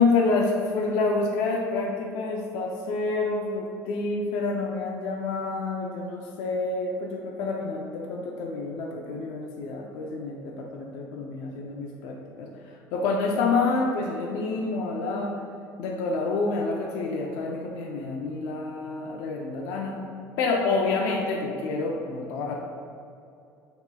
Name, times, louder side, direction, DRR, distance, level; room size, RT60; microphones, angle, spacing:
voice 1, 0.0-15.3 15.8-20.1 20.4-22.5, left 3 dB, 75° left, -1 dB, 0.4 m, -28 dB
6.9 x 2.9 x 2.2 m, 2.5 s
cardioid pair, 175°, 6 cm